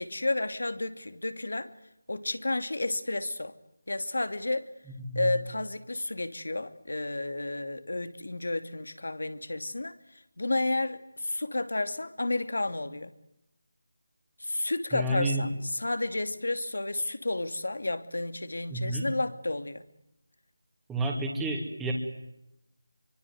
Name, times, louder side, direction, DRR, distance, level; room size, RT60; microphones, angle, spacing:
voice 1, 0.0-1.7 2.1-3.5 3.9-4.7 5.1-9.9 10.4-13.1 14.4-19.8, left 2 dB, 75° left, 2.7 m, -31 dB
voice 2, 4.9-5.4 14.9-15.5 18.7-19.1 20.9-21.9, right 1 dB, 5° right, 2.9 m, -30 dB
27.0 x 24.5 x 8.0 m
figure-of-eight pair, 165°, 0 cm